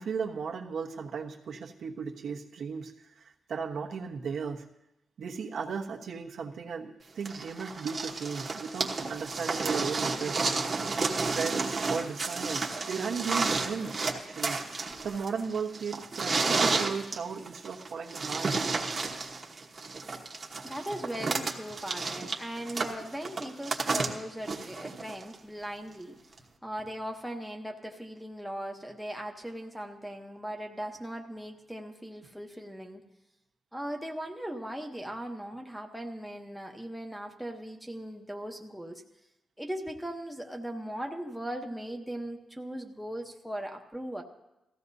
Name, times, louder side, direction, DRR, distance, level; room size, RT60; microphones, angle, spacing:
voice 1, 0.0-4.7 5.2-10.8 11.2-14.6 15.0-18.5, right 6 dB, 70° right, 0 dB, 1.2 m, -36 dB
sound 1, 7.3-25.3 26.4-26.5, right 4 dB, 35° right, 1.2 m, -31 dB
voice 2, 20.6-26.2 26.6-33.1 33.7-39.0 39.6-44.2, right 1 dB, ahead, 1 dB, 1.0 m, -39 dB
18.5 x 15.0 x 2.7 m, 0.92 s
wide cardioid pair, 160°, 0 cm